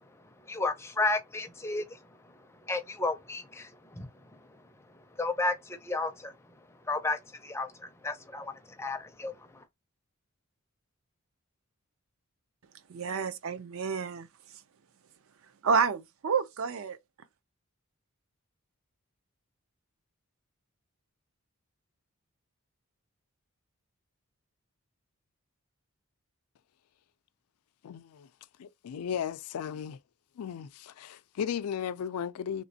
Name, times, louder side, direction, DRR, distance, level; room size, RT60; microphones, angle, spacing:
voice 1, 0.5-2.0 2.7-4.1 5.2-6.3 6.9-8.5 8.8-9.3, left 2 dB, 10° left, 0.4 m, -32 dB
voice 2, 12.9-14.3 15.6-17.0, right 5 dB, 60° right, 0.4 m, -29 dB
voice 3, 27.8-28.3 28.6-30.0 30.4-32.6, left 8 dB, 80° left, 0.4 m, -35 dB
3.2 x 3.1 x 2.7 m
head